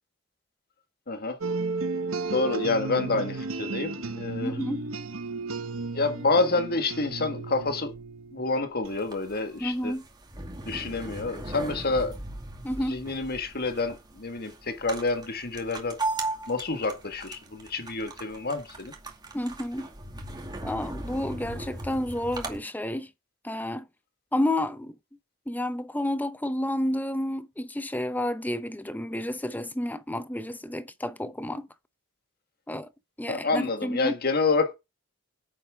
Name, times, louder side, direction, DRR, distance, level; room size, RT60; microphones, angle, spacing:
voice 1, 1.1-1.4 2.3-4.5 5.9-7.9 8.3-9.9 10.7-12.2 12.9-16.0 16.5-18.9 33.3-34.8, left 3 dB, 50° left, 1.7 m, -28 dB
sound 1, 1.4-9.0, right 3 dB, 70° right, 1.0 m, -34 dB
voice 2, 4.4-4.8 9.6-10.0 12.6-13.0 19.3-19.9 20.6-23.1 23.4-23.9 24.3-24.9 25.5-31.7 32.7-32.9 33.2-34.2, left 1 dB, 10° left, 0.8 m, -30 dB
sound 2, 8.8-22.6, right 2 dB, 20° right, 2.3 m, -38 dB
9.9 x 7.6 x 3.6 m
head